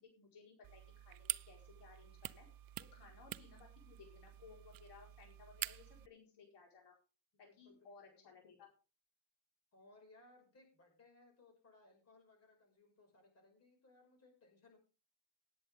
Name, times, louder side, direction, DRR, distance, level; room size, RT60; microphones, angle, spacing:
voice 1, 0.0-2.5 2.9-6.9 7.4-8.7, left 5 dB, 85° left, 0 dB, 4.7 m, -60 dB
sound 1, 0.6-6.1, right 14 dB, 60° right, 0.5 m, -47 dB
voice 2, 7.3-8.5 9.7-14.8, left 2 dB, 40° left, 2 dB, 5.8 m, -66 dB
18.5 x 8.7 x 3.6 m, 0.33 s
cardioid pair, 145°, 40 cm